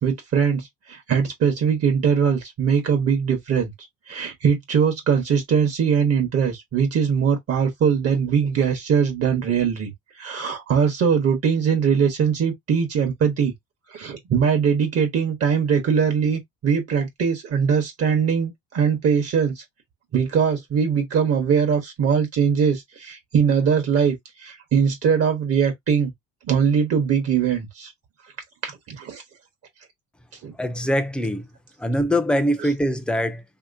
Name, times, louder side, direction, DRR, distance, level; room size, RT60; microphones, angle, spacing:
voice 1, 0.0-3.7 4.1-9.9 10.2-13.5 13.9-19.6 20.1-26.1 26.5-27.9 28.6-29.2 30.4-30.5, right 7 dB, 50° right, 1.0 m, -21 dB
voice 2, 30.5-31.5 31.8-33.4, equal, 5° left, 0.5 m, -23 dB
3.1 x 2.8 x 2.5 m
cardioid pair, 105°, 32 cm